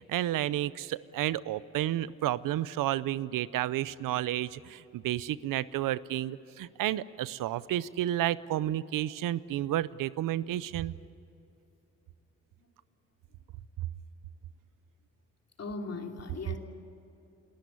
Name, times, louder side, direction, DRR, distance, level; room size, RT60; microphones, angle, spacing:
voice 1, 0.0-10.9, right 13 dB, 90° right, 18 dB, 0.6 m, -31 dB
voice 2, 15.6-16.6, left 3 dB, 50° left, 3 dB, 3.1 m, -38 dB
28.5 x 13.5 x 9.7 m, 2.9 s
cardioid pair, 60°, 32 cm